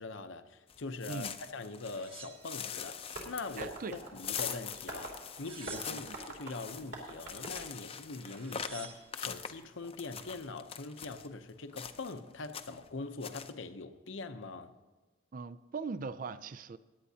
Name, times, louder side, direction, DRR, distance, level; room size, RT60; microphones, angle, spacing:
voice 1, 0.0-14.7, left 3 dB, 80° left, 8 dB, 0.8 m, -43 dB
sound 1, 0.7-2.1 2.4-11.3 11.7-12.2 12.4-12.9 13.2-13.5, left 7 dB, 30° left, 0.5 m, -43 dB
sound 2, 1.9-3.2 3.7-4.5 5.2-6.3 7.8-7.9 8.2-9.2 9.8-10.3, right 5 dB, 30° right, 1.1 m, -51 dB
Tap, 3.1-8.6, right 2 dB, 60° right, 3.1 m, -46 dB
voice 2, 3.6-4.0 6.0-6.2 15.3-16.8, right 4 dB, 45° right, 14 dB, 0.4 m, -40 dB
16.5 x 10.5 x 2.8 m, 1.2 s
head